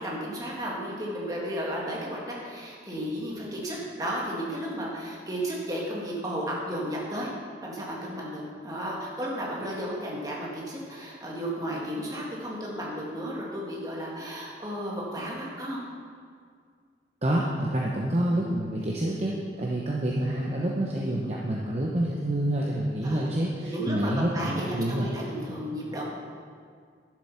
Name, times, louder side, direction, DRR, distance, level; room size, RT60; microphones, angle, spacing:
voice 1, 0.0-7.3 7.6-15.9 19.6-19.7 23.0-23.3 23.6-26.0, equal, 20° right, -4 dB, 1.9 m, -33 dB
voice 2, 17.2-25.1, right 1 dB, 35° right, -4 dB, 0.9 m, -27 dB
11.5 x 7.7 x 5.7 m, 2.1 s
head